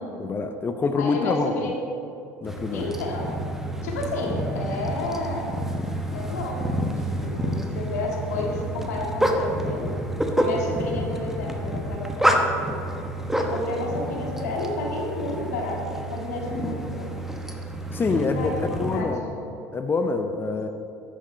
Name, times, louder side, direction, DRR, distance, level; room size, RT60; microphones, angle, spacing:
voice 1, 0.2-1.7 2.4-2.9 17.9-19.2 19.7-20.7, left 4 dB, 25° left, 7 dB, 0.6 m, -26 dB
voice 2, 0.9-1.7 2.7-3.4 3.8-5.5 6.1-9.9 10.4-12.7 13.4-17.2 18.1-19.3 20.4-20.5, left 2 dB, 85° left, -1 dB, 1.8 m, -31 dB
sound 1, 2.5-19.0, right 1 dB, 5° right, 1.1 m, -28 dB
9.8 x 6.5 x 5.4 m, 2.7 s
hypercardioid pair, 75°, 8 cm